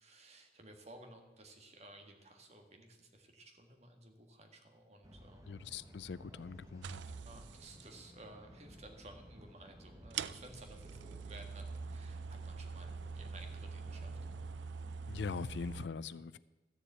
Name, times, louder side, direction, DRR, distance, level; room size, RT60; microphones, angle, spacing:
voice 1, 0.0-5.5 7.2-14.2, right 2 dB, 35° right, 4 dB, 1.7 m, -56 dB
sound 1, 5.0-15.4, equal, 20° right, 1.2 m, -56 dB
voice 2, 5.5-7.0 15.1-16.4, left 5 dB, 75° left, 18 dB, 0.4 m, -42 dB
sound 2, 6.8-7.9 9.2-9.3 10.1-15.9, right 5 dB, 90° right, 0.4 m, -44 dB
13.0 x 7.1 x 8.4 m, 1.1 s
head